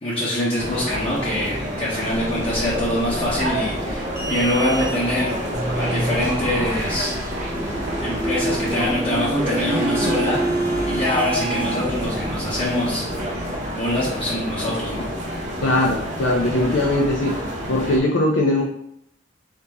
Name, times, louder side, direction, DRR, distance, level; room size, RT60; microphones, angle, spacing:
voice 1, 0.0-5.4 5.7-7.5 8.0-10.4 10.9-13.4 13.7-15.1, left 1 dB, 30° left, -9 dB, 0.9 m, -24 dB
sound 1, 0.6-18.0, equal, 40° right, 0.9 m, -29 dB
sound 2, 2.0-13.4, right 1 dB, 15° right, 0.7 m, -28 dB
voice 2, 15.6-17.3 17.7-18.6, left 1 dB, 80° left, 0 dB, 0.5 m, -20 dB
4.0 x 2.9 x 3.5 m, 0.77 s
head